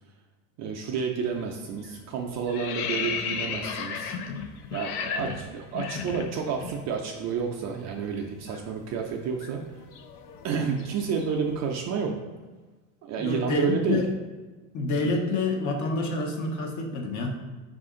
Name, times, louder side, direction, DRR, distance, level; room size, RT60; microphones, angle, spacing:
voice 1, 0.6-4.1 4.7-9.6 10.4-12.2 13.1-14.0, right 6 dB, 40° right, 2 dB, 0.4 m, -30 dB
sound 1, 1.2-1.5 1.8-6.8 7.1-7.2 7.6-11.6, left 6 dB, 70° left, 0.6 m, -35 dB
voice 2, 13.2-14.1 14.7-17.3, left 2 dB, 40° left, 1 dB, 0.9 m, -27 dB
4.8 x 2.5 x 3.6 m, 1.3 s
supercardioid pair, 115°, 46 cm